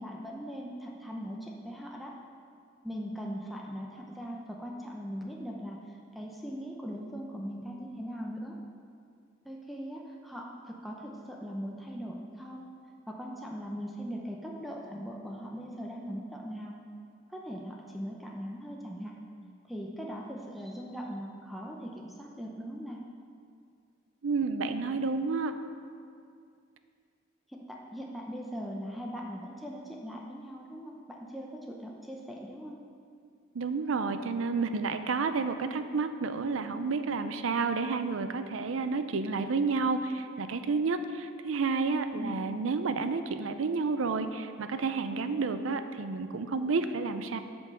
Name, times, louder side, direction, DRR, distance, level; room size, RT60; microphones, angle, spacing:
voice 1, 0.0-2.1 2.8-8.6 9.4-12.7 13.1-16.8 17.3-19.2 19.6-23.0 27.5-32.8 42.1-42.4, equal, ahead, -2 dB, 0.6 m, -40 dB
voice 2, 24.2-25.5 33.5-47.4, right 4 dB, 90° right, 9 dB, 0.5 m, -30 dB
8.4 x 5.3 x 6.7 m, 2.3 s
head